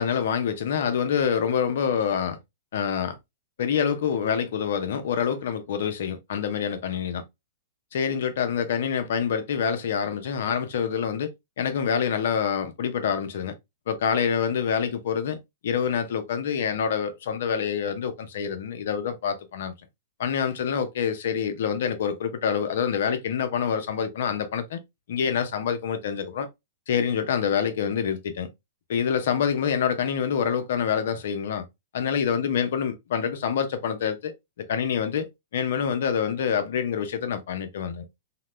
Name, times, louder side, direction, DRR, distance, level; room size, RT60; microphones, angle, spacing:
voice 1, 0.0-2.4 2.7-3.2 3.6-7.2 7.9-11.3 11.6-13.5 13.9-15.4 15.6-19.7 20.2-24.8 25.1-26.5 26.9-28.5 28.9-31.6 31.9-34.3 34.7-38.0, left 7 dB, 70° left, 0.7 m, -26 dB
2.9 x 2.1 x 3.0 m
hypercardioid pair, 125°, 0 cm